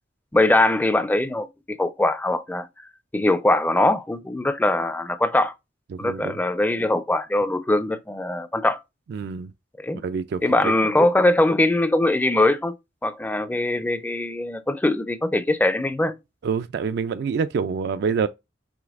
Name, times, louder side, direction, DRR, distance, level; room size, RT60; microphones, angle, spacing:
voice 1, 0.3-2.7 3.1-5.5 6.0-8.8 9.8-10.0 10.4-12.7 13.0-16.2, left 1 dB, 10° left, 0.4 m, -22 dB
voice 2, 5.9-6.4 9.1-9.5 9.9-10.7 16.4-18.3, right 5 dB, 65° right, 0.3 m, -26 dB
5.1 x 3.2 x 2.4 m
head